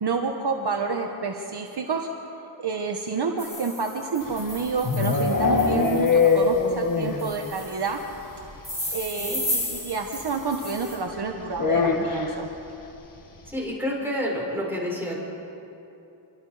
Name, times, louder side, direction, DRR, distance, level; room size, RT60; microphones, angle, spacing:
voice 1, 0.0-2.1 2.6-8.0 8.9-12.5, right 4 dB, 50° right, 2 dB, 1.4 m, -29 dB
sound 1, 3.4-6.5 7.2-8.0 8.6-11.0, left 1 dB, 15° left, 4.7 m, -34 dB
sound 2, 4.3-7.4 7.6-7.7 8.0-8.1 8.4-8.5 9.7-9.8 11.5-12.4, left 4 dB, 40° left, 1.7 m, -22 dB
voice 2, 13.5-15.2, equal, 5° right, -4 dB, 5.8 m, -29 dB
28.0 x 23.5 x 5.1 m, 2.8 s
wide cardioid pair, 180°, 48 cm